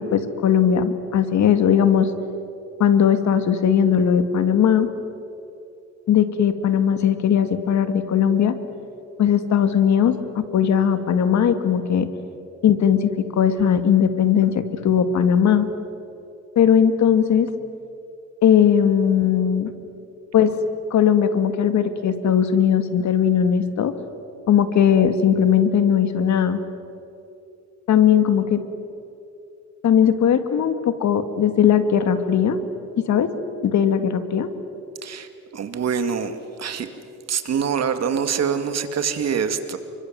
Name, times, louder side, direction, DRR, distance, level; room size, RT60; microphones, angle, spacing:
voice 1, 0.0-2.1 2.8-4.9 6.1-8.5 9.2-12.1 12.6-15.7 16.6-17.5 18.4-19.7 20.3-20.6 20.9-23.9 24.5-26.6 27.9-28.6 29.8-32.6 33.0-33.3 33.6-34.5, left 8 dB, 70° left, 10 dB, 2.2 m, -18 dB
voice 2, 35.0-36.9 37.3-39.8, right 7 dB, 60° right, 8 dB, 2.5 m, -25 dB
29.5 x 24.5 x 7.8 m, 2.7 s
cardioid pair, 90°, 30 cm